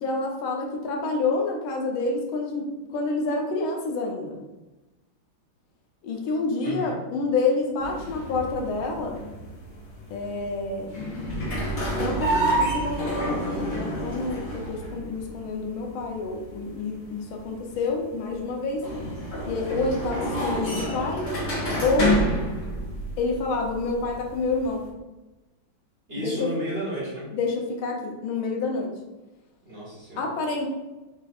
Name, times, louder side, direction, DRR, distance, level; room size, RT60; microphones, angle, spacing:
voice 1, 0.0-4.4 6.0-9.2 10.1-10.9 12.0-18.9 19.4-21.3 21.8-22.2 23.2-24.9 26.2-26.3 27.3-28.9 30.2-30.7, left 3 dB, 80° left, 1 dB, 1.6 m, -28 dB
voice 2, 6.6-7.0 26.1-27.3 29.6-30.2, right 1 dB, 35° right, -8 dB, 1.2 m, -32 dB
sound 1, 7.8-24.9, equal, 45° left, 1.0 m, -29 dB
4.5 x 2.4 x 4.2 m, 1.1 s
omnidirectional pair, 2.2 m